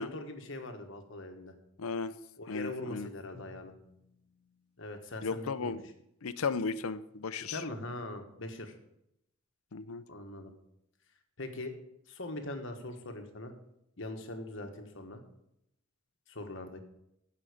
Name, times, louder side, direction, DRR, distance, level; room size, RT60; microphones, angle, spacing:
voice 1, 0.0-1.5 2.4-3.7 4.8-5.8 7.5-8.7 10.1-10.5 11.4-11.7 12.1-13.5 14.0-15.2 16.3-16.8, left 2 dB, 60° left, 5 dB, 1.4 m, -41 dB
voice 2, 1.8-2.1 2.5-3.1 5.2-5.8 6.2-7.6 9.7-10.0, left 4 dB, 80° left, 14 dB, 0.6 m, -35 dB
Drum, 3.3-6.3, left 2 dB, 25° right, 2.7 m, -61 dB
15.0 x 5.8 x 5.0 m, 0.78 s
head